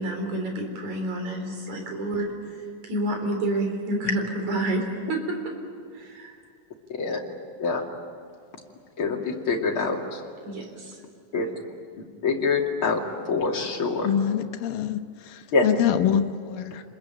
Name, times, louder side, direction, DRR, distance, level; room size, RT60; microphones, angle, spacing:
voice 1, 0.0-2.6 2.8-5.4 5.9-6.3 10.4-11.0, right 1 dB, 60° right, 5.4 m, -29 dB
voice 2, 6.9-7.2 7.6-7.8 9.0-10.2 11.3-11.5 12.2-13.0 13.3-14.1 15.5-15.6, left 4 dB, 40° left, 3.2 m, -25 dB
voice 3, 14.0-15.0 15.6-16.8, left 9 dB, 90° left, 2.8 m, -24 dB
29.5 x 21.5 x 8.9 m
omnidirectional pair, 3.9 m